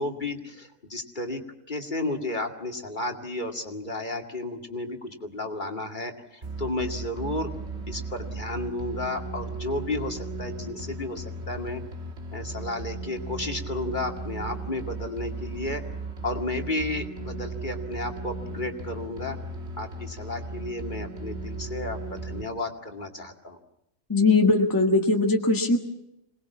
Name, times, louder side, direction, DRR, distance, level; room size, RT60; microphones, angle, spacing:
voice 1, 0.0-1.4 1.7-7.5 7.9-11.8 12.3-15.8 16.2-19.4 19.8-23.6, left 2 dB, 40° left, 3 dB, 2.4 m, -33 dB
sound 1, 6.4-22.4, right 3 dB, 55° right, 2.1 m, -36 dB
voice 2, 24.1-25.8, left 3 dB, 15° left, 2 dB, 1.7 m, -20 dB
26.5 x 19.5 x 7.2 m, 0.82 s
omnidirectional pair, 1.3 m